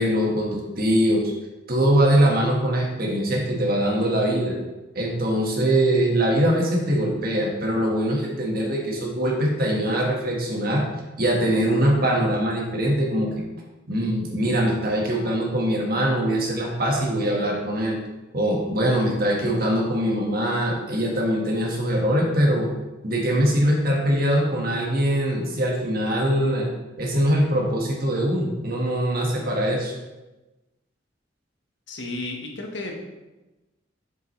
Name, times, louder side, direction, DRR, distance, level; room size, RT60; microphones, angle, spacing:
voice 1, 0.0-1.3 1.7-4.6 4.9-10.9 11.2-13.4 13.9-18.0 18.3-22.7 23.0-26.7 27.0-29.9, right 1 dB, 50° right, -1 dB, 1.6 m, -22 dB
voice 2, 31.9-33.0, left 2 dB, 65° left, 1 dB, 1.3 m, -33 dB
7.5 x 7.2 x 3.2 m, 1.1 s
head